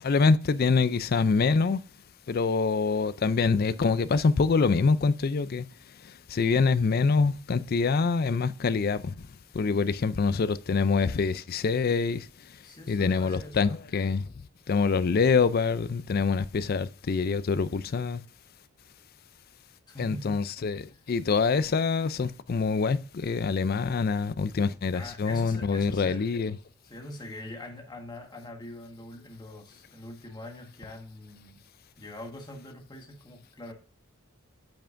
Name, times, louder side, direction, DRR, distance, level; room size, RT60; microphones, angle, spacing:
voice 1, 0.0-1.8 2.3-5.7 6.3-9.1 9.5-12.3 12.9-14.3 14.7-18.2 20.0-26.6, left 4 dB, 45° left, 0.4 m, -25 dB
voice 2, 12.6-13.9 19.9-20.4 20.9-21.0 24.9-26.2 26.8-31.6 32.0-33.7, left 1 dB, 20° left, 1.5 m, -43 dB
8.7 x 5.6 x 2.5 m
head